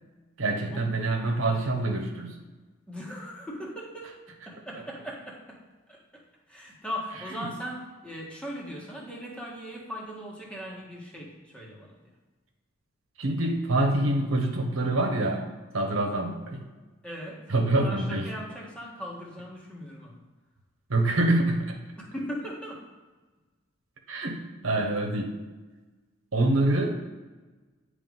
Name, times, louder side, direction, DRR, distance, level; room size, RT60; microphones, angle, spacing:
voice 1, 0.4-2.4 7.4-7.5 13.2-15.5 15.7-16.6 17.5-18.3 20.9-21.8 24.1-25.3 26.3-26.9, right 2 dB, 75° right, 2 dB, 1.1 m, -26 dB
voice 2, 2.9-5.6 5.9-12.0 17.0-20.2 22.0-22.9, equal, 5° left, -4 dB, 1.5 m, -39 dB
9.5 x 3.4 x 5.3 m, 1.3 s
head